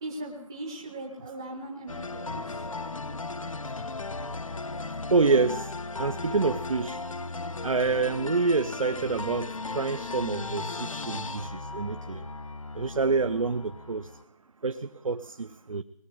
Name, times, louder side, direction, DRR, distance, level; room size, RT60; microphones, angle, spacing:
voice 1, 0.0-2.6, right 1 dB, 10° right, 0 dB, 0.6 m, -39 dB
sound 1, 1.9-14.2, left 3 dB, 75° left, 0.9 m, -36 dB
voice 2, 5.1-5.7 6.0-7.0 7.6-12.2 12.8-14.1 14.6-15.8, right 4 dB, 75° right, 10 dB, 0.7 m, -27 dB
19.5 x 8.7 x 7.7 m, 0.87 s
figure-of-eight pair, 170°, 17 cm